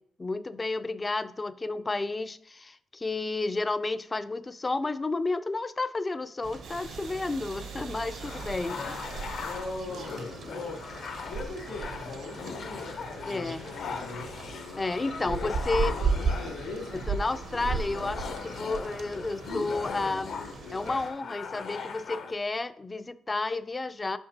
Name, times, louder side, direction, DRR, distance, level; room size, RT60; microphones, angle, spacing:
voice 1, 0.2-9.2 13.3-13.7 14.8-16.0 16.9-20.4 20.7-24.2, left 3 dB, 25° left, 0.3 m, -31 dB
sound 1, 6.4-21.1, right 5 dB, 60° right, 0.6 m, -36 dB
sound 2, 6.6-11.1 11.6-14.6, right 4 dB, 85° right, 1.4 m, -48 dB
sound 3, 8.2-22.3, left 5 dB, 60° left, 0.6 m, -39 dB
voice 2, 9.4-10.9 11.3-14.3 15.2-17.0, left 3 dB, 80° left, 1.7 m, -40 dB
6.5 x 5.1 x 2.9 m
cardioid pair, 90°, 0 cm